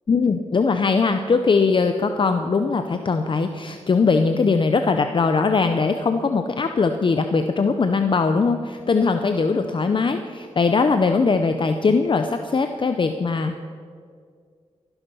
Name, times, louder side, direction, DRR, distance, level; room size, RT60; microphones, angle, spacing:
voice 1, 0.1-13.6, left 4 dB, 45° left, 7 dB, 0.7 m, -20 dB
15.0 x 11.5 x 5.6 m, 2.1 s
wide cardioid pair, 85°, 12 cm